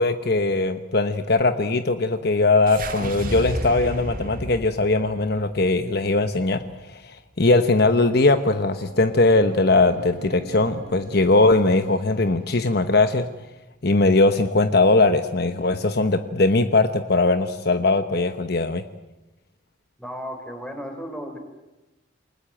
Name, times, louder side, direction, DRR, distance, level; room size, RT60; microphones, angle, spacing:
voice 1, 0.0-6.6 6.9-13.3 13.8-18.8, left 2 dB, 50° left, 9 dB, 1.1 m, -20 dB
sound 1, 2.7-7.0, right 1 dB, 45° right, 2.3 m, -33 dB
sound 2, 8.5-13.1, right 1 dB, 85° right, 4.3 m, -43 dB
voice 2, 20.0-21.4, equal, 5° left, 5 dB, 4.7 m, -34 dB
29.0 x 20.0 x 9.0 m, 1.0 s
head